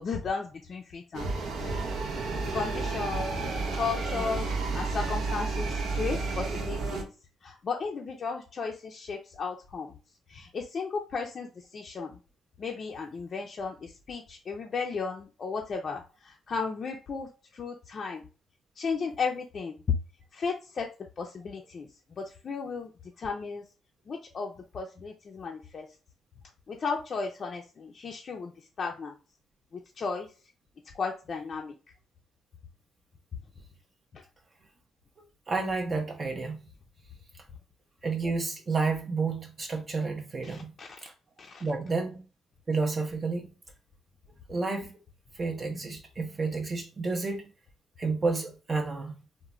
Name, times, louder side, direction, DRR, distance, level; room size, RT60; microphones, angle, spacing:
voice 1, 0.0-1.7 2.5-3.3 3.8-4.5 4.7-7.1 7.4-9.9 10.3-11.5 11.7-12.1 12.6-16.0 16.5-17.3 17.6-18.2 18.8-19.7 20.4-20.9 21.2-21.9 22.2-22.9 23.2-23.6 24.1-25.8 26.7-28.5 28.8-29.1 30.0-30.3 31.0-31.7 40.8-40.9 41.4-41.6, left 5 dB, 45° left, 0.4 m, -34 dB
sound 1, 1.1-7.0, right 3 dB, 80° right, 0.5 m, -31 dB
voice 2, 35.5-36.7 38.0-40.7 41.0-41.1 41.6-42.2 42.7-43.5 44.5-44.9 45.3-47.5 48.0-49.1, right 4 dB, 35° right, 0.5 m, -30 dB
3.0 x 2.1 x 2.4 m
cardioid pair, 90°, 0 cm